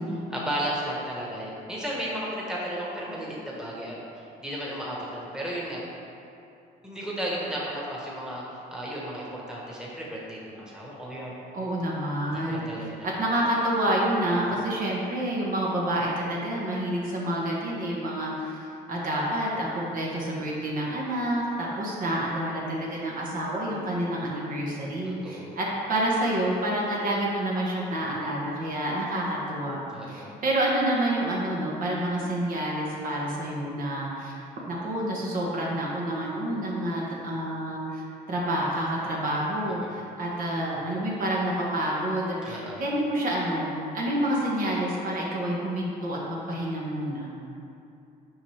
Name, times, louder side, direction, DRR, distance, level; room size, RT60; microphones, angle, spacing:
voice 1, 0.3-5.8 6.8-8.4 8.7-11.3 12.5-13.1 25.0-25.5 29.9-30.3 39.8-40.0 42.4-42.8, right 1 dB, 5° right, -5 dB, 1.5 m, -34 dB
voice 2, 11.5-18.6 18.9-29.8 30.1-34.3 34.7-38.0 38.3-47.3, right 1 dB, 55° right, -4 dB, 1.6 m, -28 dB
8.7 x 5.8 x 3.5 m, 2.6 s
cardioid pair, 110°, 17 cm